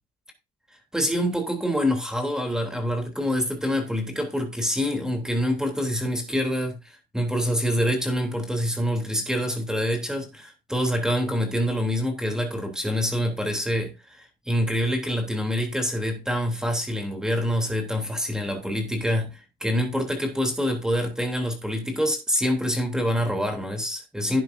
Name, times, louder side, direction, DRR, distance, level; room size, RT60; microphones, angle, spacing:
voice 1, 0.9-24.4, equal, 5° right, 3.3 m, -26 dB
12.0 x 9.3 x 2.7 m
cardioid pair, 110°, 17 cm